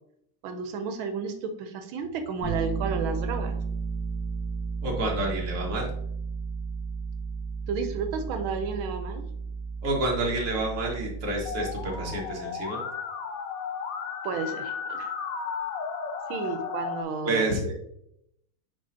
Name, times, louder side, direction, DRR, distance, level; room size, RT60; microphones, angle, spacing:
voice 1, 0.4-3.6 7.7-9.3 14.2-15.1 16.3-17.5, right 5 dB, 85° right, 7 dB, 1.5 m, -32 dB
Bass guitar, 2.4-12.3, right 5 dB, 15° left, 0.8 m, -33 dB
voice 2, 4.8-5.9 9.8-12.8 17.2-17.8, right 2 dB, 40° right, -1 dB, 1.6 m, -29 dB
Musical instrument, 11.5-17.0, left 6 dB, 80° left, 0.7 m, -34 dB
9.2 x 3.8 x 2.7 m, 0.75 s
omnidirectional pair, 2.2 m